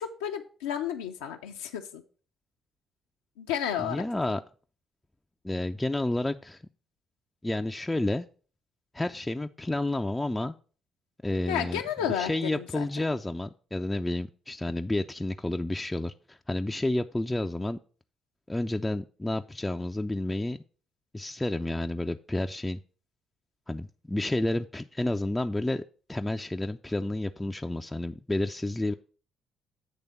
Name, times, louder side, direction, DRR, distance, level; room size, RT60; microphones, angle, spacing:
voice 1, 0.0-2.0 3.4-4.0 11.5-12.9, left 9 dB, 80° left, 3 dB, 0.5 m, -32 dB
voice 2, 3.8-4.4 5.4-6.6 7.4-8.3 8.9-10.5 11.2-11.8 12.1-17.8 18.5-20.6 21.1-22.8 23.7-28.9, left 1 dB, 15° left, 6 dB, 0.4 m, -30 dB
8.3 x 3.3 x 6.5 m, 0.41 s
hypercardioid pair, 50°, 0 cm